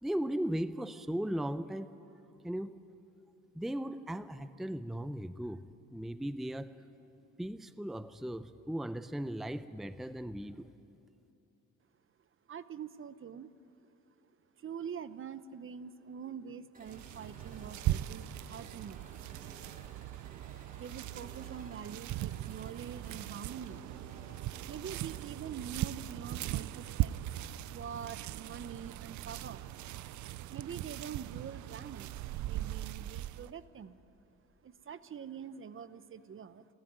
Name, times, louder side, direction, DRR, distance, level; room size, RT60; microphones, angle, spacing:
voice 1, 0.0-1.9 2.4-2.8 3.5-5.6 5.9-6.7 7.4-10.7, right 1 dB, ahead, 13 dB, 0.6 m, -37 dB
voice 2, 12.5-13.5 14.6-19.2 20.8-23.8 24.7-27.2 27.7-29.6 30.5-34.0 34.6-36.7, right 7 dB, 45° right, 14 dB, 0.8 m, -45 dB
sound 1, 16.7-33.7, right 2 dB, 25° right, 3.1 m, -58 dB
sound 2, 16.9-33.5, right 14 dB, 70° right, 0.5 m, -39 dB
29.0 x 13.0 x 9.5 m, 2.8 s
cardioid pair, 90°, 30 cm